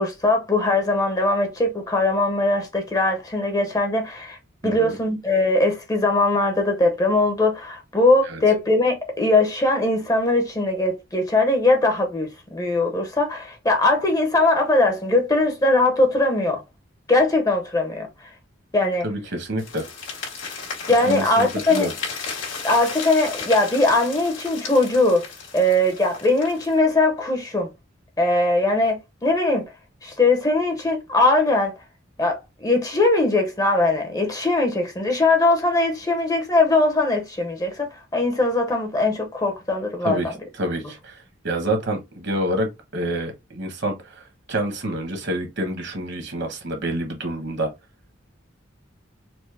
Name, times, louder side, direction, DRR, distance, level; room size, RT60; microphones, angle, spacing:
voice 1, 0.0-4.4 4.6-16.6 17.1-18.1 18.7-19.1 20.9-21.9 22.6-25.3 25.5-27.7 28.2-29.7 30.0-31.8 32.2-40.3, left 2 dB, 20° left, 0.7 m, -20 dB
voice 2, 4.6-5.0 8.2-8.4 19.0-19.8 21.0-21.9 40.0-40.3 40.6-42.7 42.9-47.7, right 1 dB, 60° right, 1.2 m, -27 dB
sound 1, 19.6-26.8, left 5 dB, 75° left, 1.7 m, -34 dB
4.3 x 2.0 x 3.2 m
head